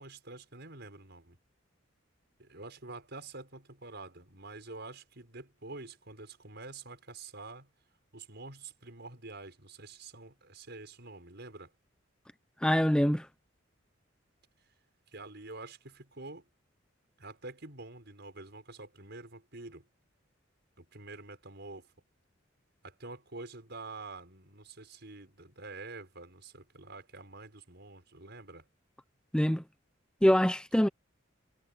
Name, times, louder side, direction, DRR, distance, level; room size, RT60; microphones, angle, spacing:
voice 1, 0.0-1.4 2.4-7.7 8.1-11.7 15.1-16.4 17.2-19.9 20.8-21.9 22.8-28.7, right 3 dB, 60° right, 6.2 m, -47 dB
voice 2, 12.6-13.3 29.3-29.6 30.2-30.9, equal, 5° left, 0.6 m, -24 dB
head